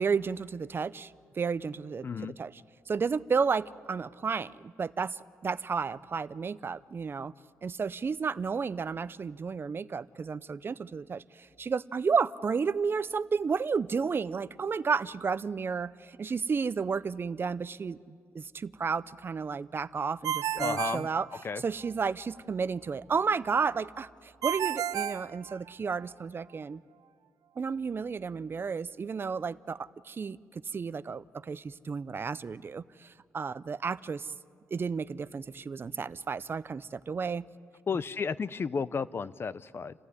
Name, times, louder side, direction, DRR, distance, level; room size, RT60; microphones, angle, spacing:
voice 1, 0.0-2.5 2.9-7.3 7.6-21.3 21.6-26.8 27.6-34.3 34.7-37.5, right 5 dB, 40° right, 17 dB, 0.6 m, -32 dB
voice 2, 2.0-2.3 20.6-21.1 21.4-21.6 37.9-39.9, left 5 dB, 40° left, 16 dB, 0.6 m, -33 dB
Ringtone, 20.2-21.9 24.4-26.0, right 10 dB, 80° right, 0.6 m, -32 dB
28.5 x 15.0 x 9.7 m, 2.2 s
cardioid pair, 95°, 6 cm